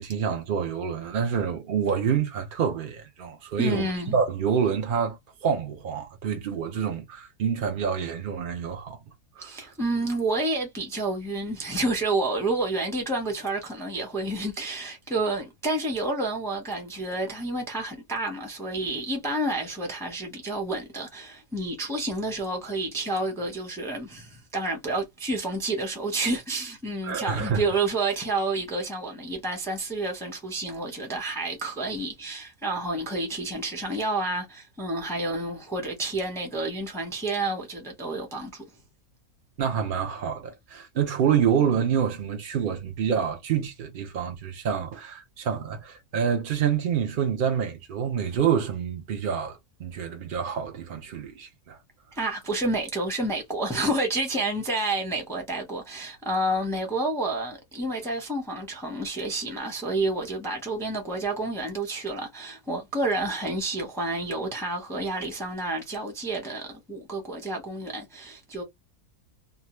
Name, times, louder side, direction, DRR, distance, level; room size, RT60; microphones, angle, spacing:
voice 1, 0.0-9.0 9.4-9.7 27.0-27.7 39.6-51.8, right 7 dB, 75° right, 0.5 m, -27 dB
voice 2, 3.6-4.1 9.4-38.6 52.1-68.6, right 2 dB, 5° left, 0.5 m, -29 dB
2.7 x 2.2 x 3.0 m
omnidirectional pair, 1.6 m